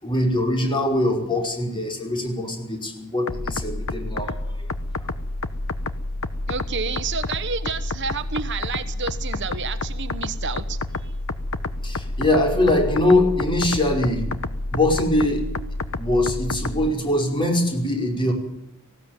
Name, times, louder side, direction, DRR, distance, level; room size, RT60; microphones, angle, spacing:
voice 1, 0.0-4.7 5.0-5.1 11.8-14.3 14.7-15.4 16.0-18.3, left 1 dB, 20° left, 2 dB, 5.2 m, -22 dB
sound 1, 3.3-16.9, left 2 dB, 70° left, 1.1 m, -29 dB
voice 2, 6.5-11.1, right 5 dB, 55° right, 11 dB, 1.1 m, -30 dB
18.5 x 17.0 x 9.3 m, 0.80 s
head